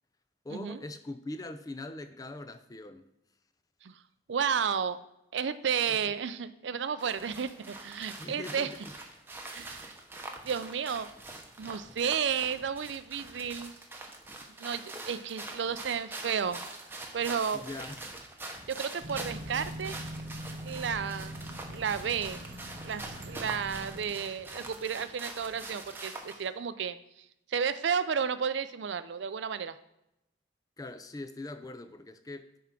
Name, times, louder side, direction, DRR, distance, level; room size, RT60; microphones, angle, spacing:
voice 1, 0.4-3.0 5.9-6.1 8.2-8.9 17.5-18.0 30.8-32.5, left 2 dB, 20° left, 0.4 m, -42 dB
voice 2, 4.3-5.0 5.3-8.7 9.5-9.9 10.4-11.1 11.6-13.7 14.6-16.6 17.1-17.6 18.7-20.0 20.6-21.4 21.7-22.4 22.8-27.0 27.5-29.8, right 7 dB, 80° right, 0.5 m, -32 dB
sound 1, 7.0-26.5, right 2 dB, 10° right, 0.8 m, -44 dB
sound 2, 19.0-24.0, equal, 50° right, 0.9 m, -42 dB
9.3 x 3.6 x 5.8 m
head